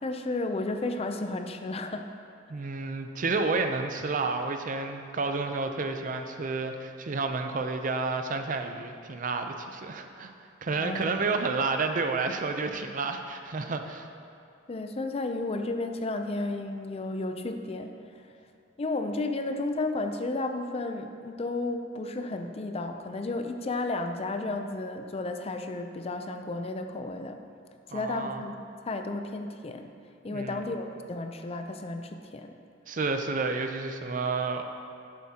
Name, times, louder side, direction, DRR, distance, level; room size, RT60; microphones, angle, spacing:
voice 1, 0.0-2.1 10.8-11.1 14.7-18.3 18.8-27.4 27.9-28.5 28.9-29.9 30.2-32.5, left 2 dB, 30° left, 6 dB, 0.4 m, -33 dB
voice 2, 2.5-10.3 10.6-14.1 27.9-28.4 30.3-30.6 32.9-34.6, right 3 dB, 45° right, 6 dB, 0.5 m, -30 dB
12.0 x 7.4 x 2.9 m, 2.4 s
head